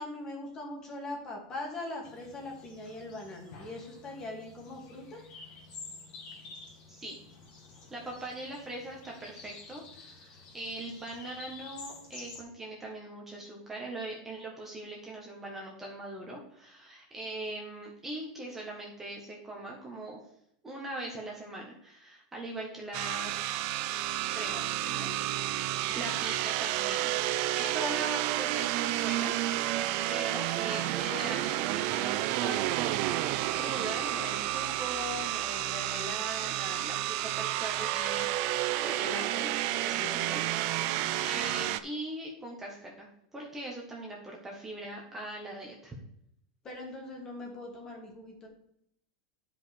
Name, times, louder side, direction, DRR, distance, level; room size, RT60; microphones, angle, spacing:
voice 1, 0.0-5.2 24.5-25.2 25.8-26.2 27.8-27.9 46.6-48.5, left 2 dB, 25° left, 1 dB, 2.4 m, -42 dB
sound 1, 2.0-12.4, left 4 dB, 45° left, 2.3 m, -50 dB
voice 2, 7.9-20.2 20.6-23.6 24.3-25.2 25.9-27.1 27.5-32.7 33.5-40.4 40.7-45.9, right 1 dB, 10° right, -2 dB, 1.5 m, -41 dB
sound 2, 22.9-41.8, right 14 dB, 50° right, 0.5 m, -31 dB
9.9 x 5.2 x 4.7 m, 0.73 s
supercardioid pair, 150°, 3 cm